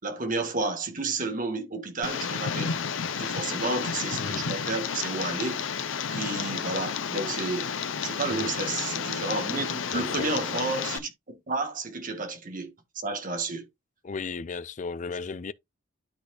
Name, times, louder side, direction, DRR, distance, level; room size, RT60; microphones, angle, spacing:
voice 1, 0.0-2.7 3.2-5.7 6.1-7.7 8.0-12.7 13.0-13.7, right 3 dB, 40° right, 1.5 m, -31 dB
Tick, 2.0-11.0, left 6 dB, 70° left, 0.7 m, -31 dB
voice 2, 9.9-10.2 14.0-15.5, left 4 dB, 35° left, 0.4 m, -35 dB
12.0 x 4.1 x 2.4 m
head